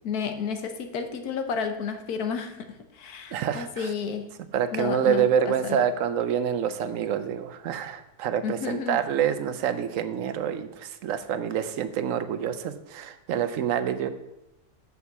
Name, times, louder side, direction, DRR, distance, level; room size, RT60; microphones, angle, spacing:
voice 1, 0.0-2.7 2.9-4.3 4.7-5.8 8.4-9.0, left 6 dB, 80° left, 7 dB, 1.4 m, -31 dB
voice 2, 3.3-3.9 4.5-14.1, right 8 dB, 65° right, 11 dB, 1.0 m, -27 dB
6.4 x 5.5 x 6.9 m, 0.93 s
omnidirectional pair, 1.6 m